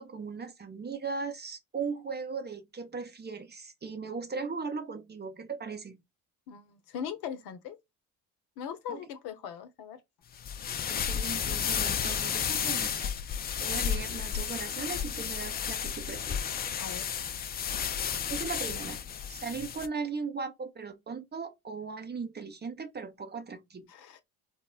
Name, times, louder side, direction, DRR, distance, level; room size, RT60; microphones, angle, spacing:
voice 1, 0.0-6.0 8.9-9.0 10.9-13.1 13.6-16.4 18.3-19.0 19.3-23.8, right 5 dB, 25° right, 0.7 m, -38 dB
voice 2, 6.5-7.8 8.6-10.0 16.8-17.1 23.9-24.2, left 8 dB, 60° left, 0.7 m, -40 dB
sound 1, 10.4-19.9, left 8 dB, 25° left, 0.3 m, -32 dB
4.3 x 2.1 x 2.2 m
hypercardioid pair, 50°, 44 cm